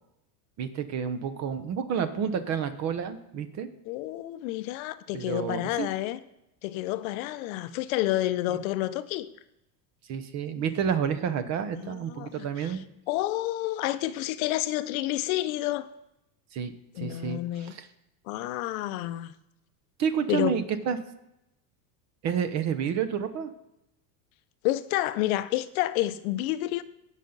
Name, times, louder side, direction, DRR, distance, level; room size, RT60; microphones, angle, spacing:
voice 1, 0.6-3.7 5.1-5.9 8.5-8.6 10.1-12.8 16.5-17.9 20.0-21.0 22.2-23.5, right 7 dB, 35° right, 0.9 m, -30 dB
voice 2, 3.9-6.2 6.6-9.3 11.8-12.8 13.1-15.9 17.0-17.8 18.3-19.3 20.3-20.6 24.6-26.8, left 15 dB, 60° left, 0.7 m, -29 dB
16.5 x 5.9 x 3.9 m
supercardioid pair, 145°, 48 cm